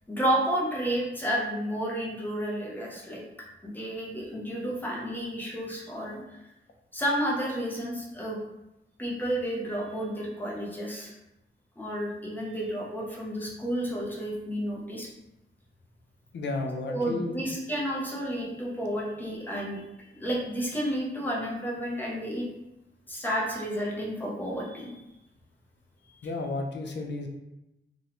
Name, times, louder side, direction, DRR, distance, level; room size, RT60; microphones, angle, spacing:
voice 1, 0.1-3.2 3.6-6.2 6.9-8.4 9.0-11.1 11.8-15.1 16.9-19.8 20.1-22.5 23.1-24.9, equal, 10° left, -4 dB, 0.5 m, -31 dB
voice 2, 16.3-17.4 26.2-27.3, left 2 dB, 60° left, 3 dB, 0.4 m, -32 dB
2.5 x 2.1 x 2.9 m, 0.94 s
wide cardioid pair, 165°, 21 cm